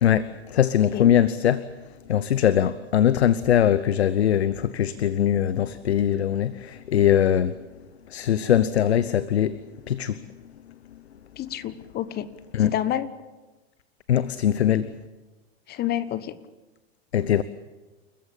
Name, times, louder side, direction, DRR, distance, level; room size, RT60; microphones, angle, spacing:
voice 1, 0.0-7.7 8.1-10.3 10.7-11.0 12.5-12.7 14.1-14.9 17.1-17.4, left 10 dB, 80° left, 0.9 m, -22 dB
voice 2, 11.4-12.3 12.6-13.1 15.7-16.4, left 11 dB, 30° left, 1.2 m, -28 dB
29.5 x 14.5 x 8.6 m
hypercardioid pair, 100°, 32 cm